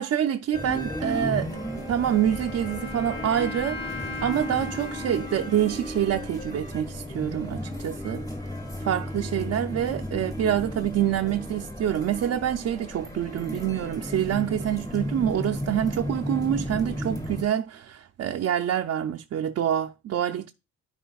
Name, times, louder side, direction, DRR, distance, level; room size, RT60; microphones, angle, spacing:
voice 1, 0.0-1.6 1.9-8.2 8.8-20.5, right 10 dB, 55° right, 0.5 m, -26 dB
sound 1, 0.5-17.4, equal, 10° left, 1.6 m, -34 dB
Wind instrument woodwind instrument, 1.5-7.2, left 4 dB, 35° left, 2.8 m, -39 dB
13.5 x 4.8 x 2.3 m
wide cardioid pair, 175°, 30 cm